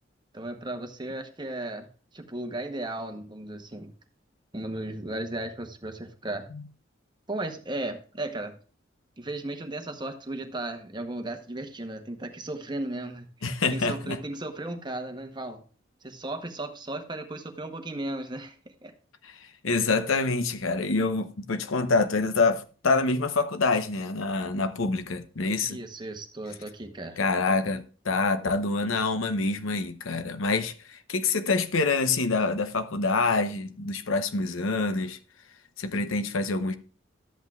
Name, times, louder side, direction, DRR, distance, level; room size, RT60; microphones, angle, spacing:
voice 1, 0.3-1.9 2.1-3.9 4.5-6.5 7.3-8.5 9.2-15.6 16.0-18.6 18.8-18.9 25.7-27.2, right 2 dB, 20° right, 1.0 m, -35 dB
voice 2, 13.4-14.2 19.2-25.8 27.2-35.2 35.8-36.7, left 3 dB, 85° left, 0.8 m, -26 dB
12.5 x 8.1 x 2.4 m
head